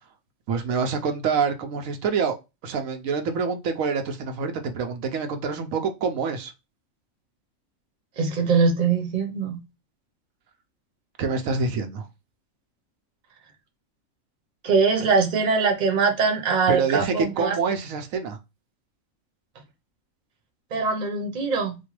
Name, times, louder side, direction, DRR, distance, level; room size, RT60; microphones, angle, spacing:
voice 1, 0.5-2.4 2.6-6.5 11.2-12.1 16.7-18.4, right 5 dB, 85° right, 1.1 m, -26 dB
voice 2, 8.2-9.6 14.6-17.5 20.7-21.8, right 5 dB, 35° right, 0.9 m, -22 dB
4.3 x 2.2 x 3.0 m
omnidirectional pair, 1.4 m